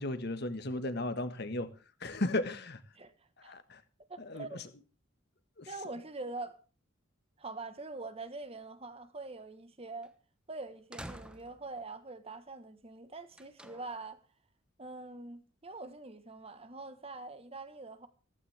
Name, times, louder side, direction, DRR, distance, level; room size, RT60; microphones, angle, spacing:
voice 1, 0.0-1.7 2.0-2.8 3.4-3.8 4.2-4.5 5.6-5.7, left 2 dB, 55° left, 1.6 m, -35 dB
voice 2, 4.1-4.6 5.7-6.6 7.4-10.1 10.5-14.2 14.8-18.1, right 3 dB, 30° right, 1.4 m, -44 dB
sound 1, 10.0-10.1 10.9-11.8 13.3-14.1, right 1 dB, 5° right, 1.1 m, -48 dB
15.0 x 15.0 x 3.5 m
head